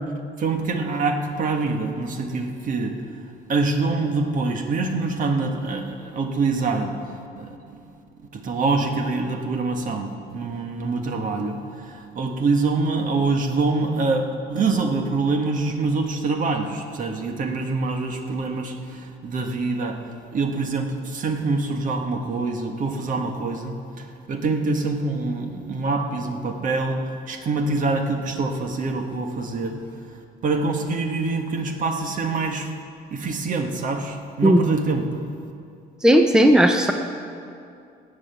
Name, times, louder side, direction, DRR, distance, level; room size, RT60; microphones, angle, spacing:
voice 1, 0.4-3.2 3.5-7.8 8.3-29.8 30.4-32.7 33.1-35.1, right 3 dB, 50° right, 4 dB, 1.7 m, -25 dB
voice 2, 36.0-36.9, equal, 5° right, 5 dB, 0.7 m, -15 dB
18.5 x 7.7 x 7.1 m, 2.5 s
cardioid pair, 110°, 17 cm